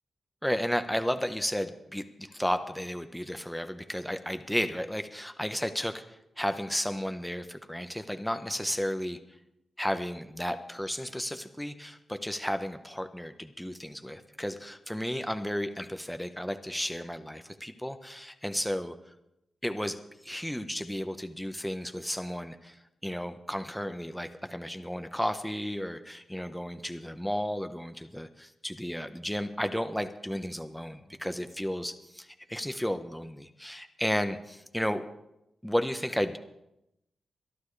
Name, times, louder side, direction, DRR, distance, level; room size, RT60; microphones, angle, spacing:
voice 1, 0.4-9.2 9.8-18.9 19.6-22.8 23.0-35.0 35.6-36.4, equal, 5° left, 8 dB, 1.1 m, -33 dB
23.0 x 11.5 x 3.4 m, 0.85 s
cardioid pair, 55°, 0 cm